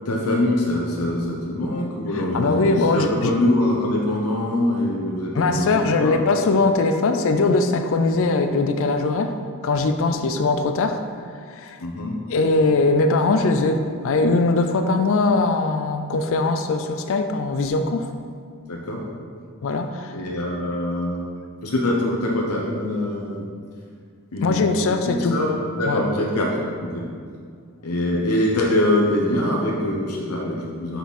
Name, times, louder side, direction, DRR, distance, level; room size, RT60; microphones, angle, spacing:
voice 1, 0.0-6.3 11.8-12.2 18.7-19.0 20.1-21.2 21.6-23.4 24.3-27.0 27.8-31.0, left 1 dB, 90° left, -2 dB, 0.9 m, -24 dB
voice 2, 2.2-3.3 5.3-9.4 9.6-11.0 11.5-11.8 12.3-18.1 19.6-20.2 24.4-25.3 25.8-26.0, left 3 dB, 60° left, 7 dB, 0.4 m, -21 dB
5.9 x 5.6 x 4.1 m, 2.1 s
head